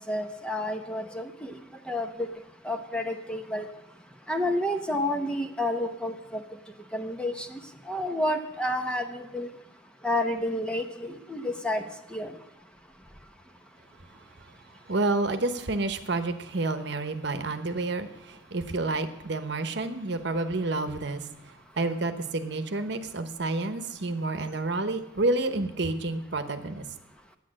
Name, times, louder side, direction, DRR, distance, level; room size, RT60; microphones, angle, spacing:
voice 1, 0.1-1.6 1.9-2.3 2.6-3.7 4.3-6.4 6.9-9.5 10.0-11.8 12.1-12.3, left 1 dB, 5° left, 6 dB, 0.8 m, -30 dB
voice 2, 14.9-26.9, right 2 dB, 65° right, 8 dB, 1.0 m, -29 dB
11.0 x 9.1 x 7.6 m, 0.91 s
head